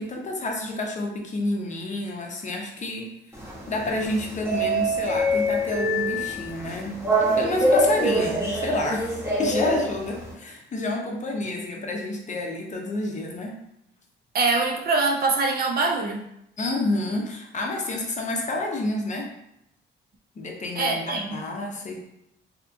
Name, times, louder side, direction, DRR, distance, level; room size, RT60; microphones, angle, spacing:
voice 1, 0.0-3.1 3.7-7.0 7.4-9.1 9.4-13.6 16.6-19.3 20.4-22.1, left 2 dB, 40° left, 0 dB, 0.6 m, -29 dB
sound 1, 3.3-10.3, equal, 15° right, 0.9 m, -25 dB
voice 2, 14.3-16.2 20.8-21.4, right 3 dB, 50° right, 2 dB, 0.5 m, -23 dB
2.8 x 2.4 x 2.5 m, 0.81 s
cardioid pair, 90°, 20 cm